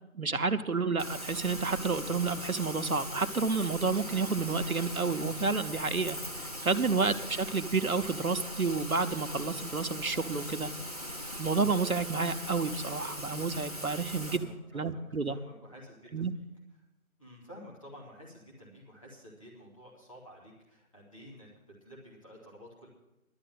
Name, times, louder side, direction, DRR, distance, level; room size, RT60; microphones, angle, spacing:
voice 1, 0.1-10.7 11.4-14.5 14.7-15.4 16.1-16.3, right 4 dB, 80° right, 9 dB, 1.1 m, -30 dB
Rain, 1.0-14.4, equal, 25° right, 1.1 m, -40 dB
voice 2, 14.2-16.4 17.2-21.5 21.8-22.9, equal, 25° left, -4 dB, 2.5 m, -51 dB
12.0 x 7.6 x 9.0 m, 0.94 s
figure-of-eight pair, 170°, 42 cm